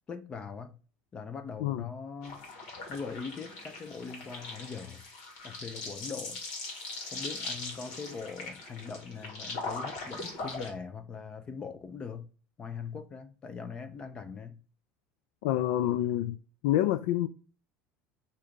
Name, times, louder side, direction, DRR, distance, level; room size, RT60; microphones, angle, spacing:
voice 1, 0.1-0.8 1.1-2.4 2.9-5.0 5.4-6.4 7.1-12.3 12.6-14.6, left 5 dB, 20° left, 0.4 m, -41 dB
sound 1, 2.2-10.7, left 3 dB, 70° left, 1.8 m, -40 dB
voice 2, 15.4-16.4 16.6-17.3, left 13 dB, 90° left, 0.3 m, -27 dB
4.9 x 2.8 x 3.5 m
cardioid pair, 170°, 4 cm